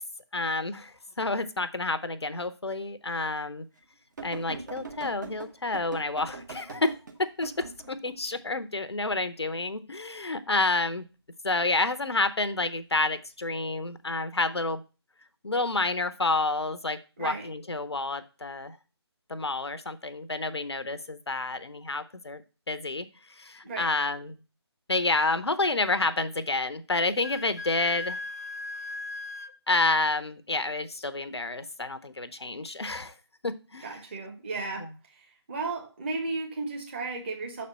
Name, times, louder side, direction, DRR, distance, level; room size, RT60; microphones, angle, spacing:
voice 1, 0.3-3.6 4.2-7.5 7.9-11.0 11.4-14.8 15.4-18.8 19.3-22.4 22.7-23.1 23.4-24.4 24.9-28.2 29.7-33.1 33.4-34.0 34.8-34.9, left 3 dB, 70° left, 12 dB, 0.7 m, -29 dB
sound 1, 4.2-8.1 11.6-12.0 13.1-13.2, right 4 dB, 40° right, 1.3 m, -42 dB
Wind instrument woodwind instrument, 27.0-29.5, left 2 dB, 35° left, 0.5 m, -37 dB
voice 2, 33.8-37.7, right 3 dB, 25° right, 1 dB, 1.4 m, -34 dB
6.6 x 4.3 x 5.3 m, 0.32 s
figure-of-eight pair, 150°, 14 cm